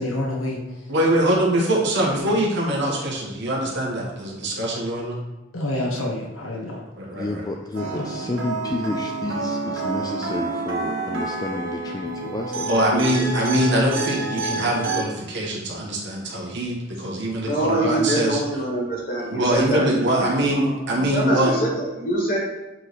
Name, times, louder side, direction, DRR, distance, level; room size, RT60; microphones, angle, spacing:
voice 1, 0.0-0.6 5.5-6.8 7.9-8.1, left 1 dB, 85° left, -2 dB, 1.2 m, -27 dB
voice 2, 0.9-5.2 7.0-7.4 7.8-8.0 12.7-18.4 19.3-21.5, right 1 dB, 60° right, -2 dB, 1.3 m, -23 dB
voice 3, 7.1-13.1, left 2 dB, 20° left, 2 dB, 0.3 m, -31 dB
sound 1, 7.7-15.0, right 3 dB, 75° right, 1.2 m, -28 dB
voice 4, 17.4-20.7 21.1-22.4, right 1 dB, 45° left, -3 dB, 1.7 m, -24 dB
7.5 x 3.2 x 4.0 m, 1.0 s
head